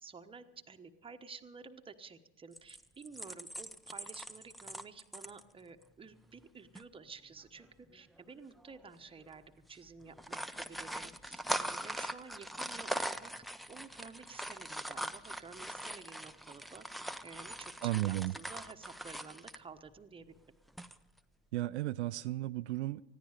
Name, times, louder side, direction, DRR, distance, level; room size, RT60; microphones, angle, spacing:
voice 1, 0.0-9.4 9.7-13.3 13.7-16.8 17.2-20.2, right 5 dB, 15° right, 7 dB, 1.0 m, -52 dB
sound 1, 2.6-5.4 5.8-5.9 6.2-6.4 6.7-6.8 7.8-8.2 8.7-8.9 9.2-9.4 10.0-19.6 20.7-21.2, equal, ahead, 0.5 m, -41 dB
voice 2, 17.8-18.3 21.5-23.0, right 16 dB, 75° right, 13 dB, 0.5 m, -34 dB
20.0 x 14.5 x 4.9 m, 1.0 s
hypercardioid pair, 80°, 35 cm